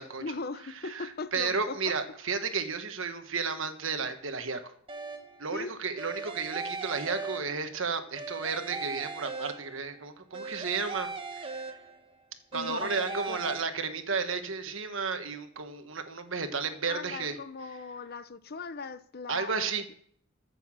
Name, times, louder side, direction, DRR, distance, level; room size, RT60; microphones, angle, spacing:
voice 1, 0.2-2.0 5.5-5.7 12.5-13.6 16.9-19.8, left 4 dB, 50° left, 0.7 m, -39 dB
voice 2, 0.8-4.7 5.4-11.7 12.5-17.4 19.3-19.8, right 5 dB, 65° right, 1.4 m, -33 dB
sound 1, 4.9-5.5 6.0-7.8 8.2-10.0 10.3-12.1 12.5-13.6, right 3 dB, 25° right, 1.1 m, -39 dB
13.5 x 7.0 x 7.5 m
head